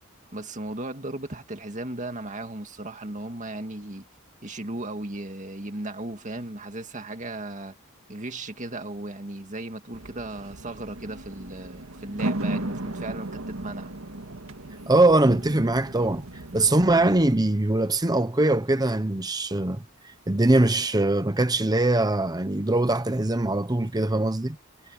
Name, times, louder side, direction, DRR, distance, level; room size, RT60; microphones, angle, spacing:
voice 1, 0.3-4.0 4.4-7.7 8.1-13.9, right 2 dB, 35° right, 2.1 m, -36 dB
sound 1, 9.9-17.3, right 1 dB, 80° right, 1.8 m, -35 dB
voice 2, 14.9-16.2 16.5-19.8 20.3-24.6, right 2 dB, 20° right, 0.9 m, -22 dB
head